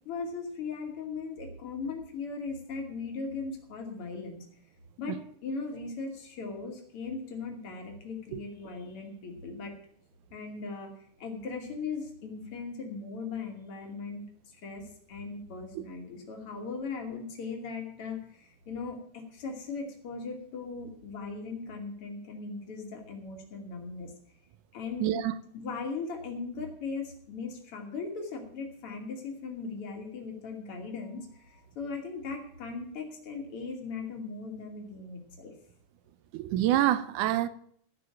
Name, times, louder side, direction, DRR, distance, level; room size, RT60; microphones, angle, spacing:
voice 1, 0.0-4.4 5.0-9.7 10.3-10.9 11.2-14.2 14.5-14.8 15.1-24.1 24.7-25.2 25.5-35.5, left 4 dB, 45° left, 3.3 m, -38 dB
voice 2, 25.0-25.3 36.3-37.5, right 13 dB, 80° right, 2.3 m, -26 dB
15.0 x 6.1 x 8.8 m
omnidirectional pair, 3.6 m